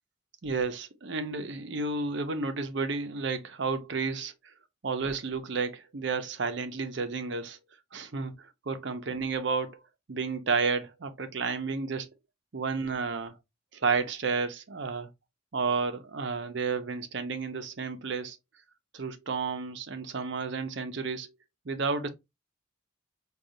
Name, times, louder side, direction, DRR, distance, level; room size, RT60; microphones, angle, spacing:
voice 1, 0.4-4.3 4.8-7.6 7.9-9.8 10.1-12.1 12.5-13.4 13.7-15.1 15.5-18.4 18.9-21.3 21.7-22.1, right 4 dB, 60° right, 0.6 m, -31 dB
4.9 x 2.4 x 2.6 m
head